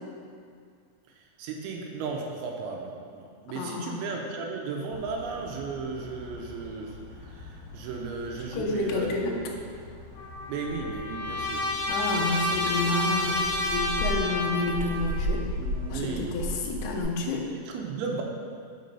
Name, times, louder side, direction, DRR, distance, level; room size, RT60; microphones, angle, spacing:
voice 1, 1.2-9.2 10.5-11.7 15.6-16.4 17.3-18.2, right 4 dB, 85° right, 0 dB, 2.8 m, -35 dB
voice 2, 3.5-3.9 8.5-9.4 11.9-15.5 15.9-17.5, left 3 dB, 80° left, -1 dB, 2.7 m, -29 dB
sound 1, 4.9-17.0, equal, 45° left, 2.2 m, -37 dB
Trumpet, 10.2-15.0, left 1 dB, 65° left, 3.3 m, -30 dB
6.7 x 5.2 x 5.4 m, 2.2 s
omnidirectional pair, 5.6 m